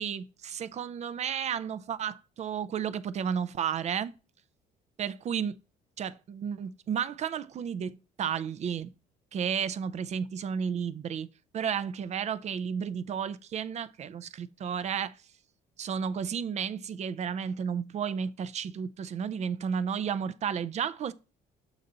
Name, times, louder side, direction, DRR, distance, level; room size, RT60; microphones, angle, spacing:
voice 1, 0.0-4.1 5.0-5.5 6.0-8.9 9.3-11.3 11.5-15.2 15.8-21.1, right 7 dB, 40° right, 0.5 m, -32 dB
6.8 x 3.9 x 3.9 m
cardioid pair, 110°, 17 cm